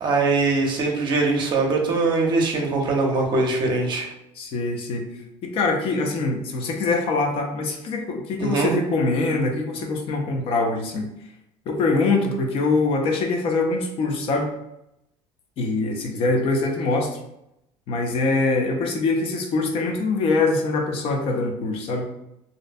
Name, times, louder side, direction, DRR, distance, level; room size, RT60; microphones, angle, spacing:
voice 1, 0.0-4.1 8.4-8.7, right 3 dB, 40° right, 0 dB, 0.6 m, -22 dB
voice 2, 4.4-5.0 5.4-11.1 11.7-14.5 15.6-17.2 17.9-22.1, left 3 dB, 55° left, 3 dB, 0.5 m, -23 dB
2.5 x 2.1 x 2.5 m, 0.83 s
cardioid pair, 120°, 12 cm